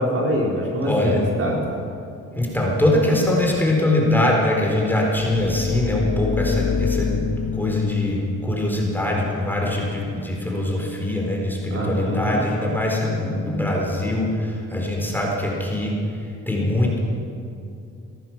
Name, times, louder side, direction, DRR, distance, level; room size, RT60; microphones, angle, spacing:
voice 1, 0.0-1.6 11.7-12.4, equal, 50° right, -2 dB, 4.0 m, -24 dB
voice 2, 0.9-1.2 2.3-16.0 16.5-17.0, left 1 dB, 5° left, -1 dB, 4.1 m, -22 dB
sound 1, 5.1-10.7, left 6 dB, 55° left, 1.3 m, -28 dB
17.0 x 14.0 x 6.0 m, 2.5 s
cardioid pair, 90°, 30 cm